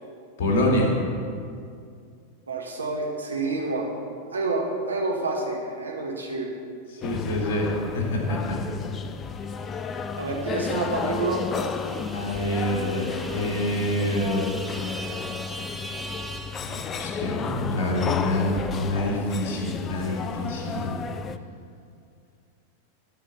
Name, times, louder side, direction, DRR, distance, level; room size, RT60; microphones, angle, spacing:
voice 1, 0.4-0.9 6.9-8.6 12.1-14.5 16.6-20.9, left 1 dB, 50° left, -1 dB, 2.3 m, -26 dB
voice 2, 2.5-3.9 4.3-6.5 10.2-11.4, right 3 dB, 75° right, 0 dB, 1.5 m, -28 dB
sound 1, 7.0-21.4, left 5 dB, 25° left, 0.4 m, -33 dB
sound 2, 9.3-17.4, right 1 dB, 5° right, 0.7 m, -41 dB
12.0 x 4.8 x 6.3 m, 2.3 s
figure-of-eight pair, 90°, 0 cm